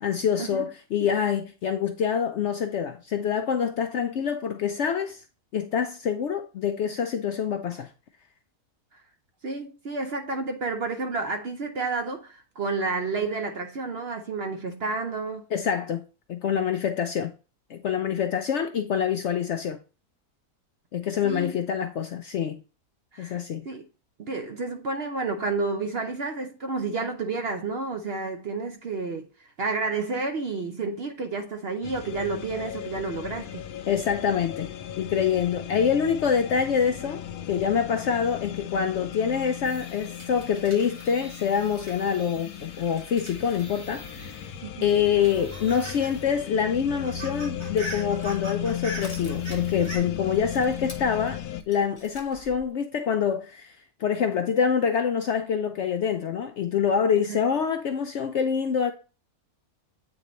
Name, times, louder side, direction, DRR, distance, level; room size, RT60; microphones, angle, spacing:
voice 1, 0.0-5.2 5.5-7.9 15.5-16.0 16.3-17.3 17.7-19.8 20.9-22.6 23.2-23.6 33.9-34.7 35.0-37.2 37.5-44.4 44.8-58.9, left 7 dB, 65° left, 0.7 m, -26 dB
voice 2, 9.4-15.4 21.2-21.6 23.1-23.8 24.2-29.3 29.6-33.6 44.6-44.9 57.3-57.4, right 3 dB, 55° right, 0.7 m, -30 dB
sound 1, 31.8-51.6, left 10 dB, 85° left, 1.1 m, -36 dB
sound 2, 39.6-44.6 44.9-46.2 46.5-46.6 46.9-50.0, equal, 80° right, 3.3 m, -42 dB
Crushing, 47.7-52.7, left 3 dB, 20° left, 1.0 m, -47 dB
8.4 x 3.9 x 3.0 m
omnidirectional pair, 1.6 m